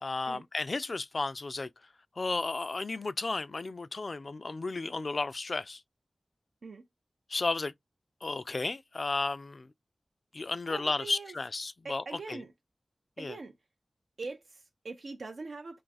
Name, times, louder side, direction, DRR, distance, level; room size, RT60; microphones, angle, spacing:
voice 1, 0.0-1.7 2.2-5.8 7.3-7.7 8.2-9.7 10.3-12.4 13.2-13.4, left 3 dB, 60° left, 0.3 m, -33 dB
voice 2, 10.7-11.3 11.8-12.5 13.2-13.5 14.2-15.8, right 3 dB, 80° right, 0.4 m, -42 dB
2.6 x 2.4 x 3.9 m
cardioid pair, 40°, 0 cm